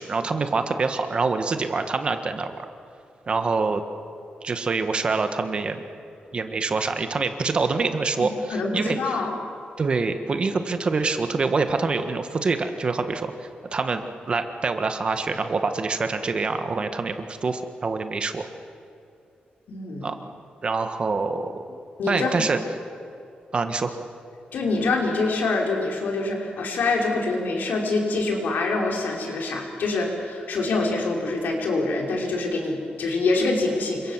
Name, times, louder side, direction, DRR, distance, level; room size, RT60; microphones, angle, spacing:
voice 1, 0.0-2.6 3.3-3.8 4.4-5.8 6.3-9.2 9.8-18.5 20.0-20.1 20.6-21.8 22.1-22.6 23.5-23.9, right 4 dB, 35° right, 8 dB, 1.6 m, -25 dB
voice 2, 8.5-9.3 19.7-20.1 22.0-22.5 24.5-34.1, left 3 dB, 80° left, 0 dB, 5.5 m, -25 dB
29.0 x 25.5 x 7.5 m, 2.6 s
wide cardioid pair, 175°, 3 cm